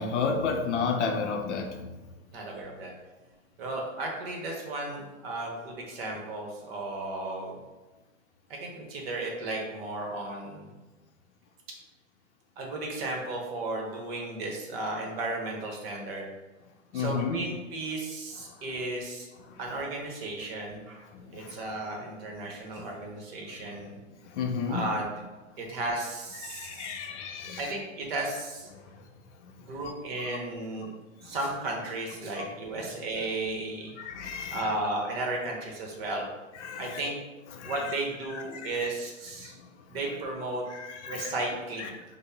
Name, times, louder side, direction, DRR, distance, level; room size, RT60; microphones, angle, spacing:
voice 1, 0.0-1.9 16.9-17.4 18.4-18.6 19.4-19.6 21.1-21.6 22.8-22.9 24.1-24.9 26.4-27.7 28.7-29.0 29.4-29.9 31.2-31.4 32.4-32.5 32.8-32.9 34.0-34.8 36.5-37.0 37.5-37.9 38.3-38.9 39.4-40.0 40.7-41.3 41.8-41.9, left 5 dB, 60° left, 3 dB, 0.6 m, -33 dB
voice 2, 2.3-2.9 3.6-7.6 8.5-10.7 12.6-16.3 16.9-19.3 19.6-21.0 21.3-24.0 24.7-25.1 25.6-26.9 27.6-28.7 29.7-30.9 31.2-34.0 34.5-36.3 36.8-37.2 37.6-39.5 39.9-40.6 41.1-41.9, right 2 dB, 50° right, 0 dB, 0.9 m, -34 dB
5.0 x 2.1 x 2.2 m, 1.2 s
hypercardioid pair, 125°, 39 cm